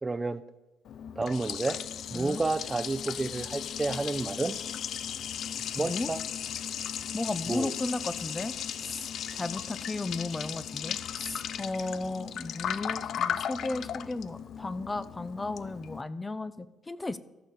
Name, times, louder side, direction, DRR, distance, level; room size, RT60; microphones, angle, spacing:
voice 1, 0.0-0.4 1.2-1.8 2.1-4.5 5.8-6.2 7.5-7.7, right 3 dB, 20° right, 12 dB, 0.6 m, -30 dB
Liquid, 0.9-16.0, left 9 dB, 70° left, 0.4 m, -36 dB
voice 2, 5.8-6.1 7.1-8.5 8.8-9.1 9.4-17.2, left 2 dB, 20° left, 15 dB, 0.6 m, -35 dB
14.5 x 6.4 x 4.2 m, 1.1 s
cardioid pair, 90°, 0 cm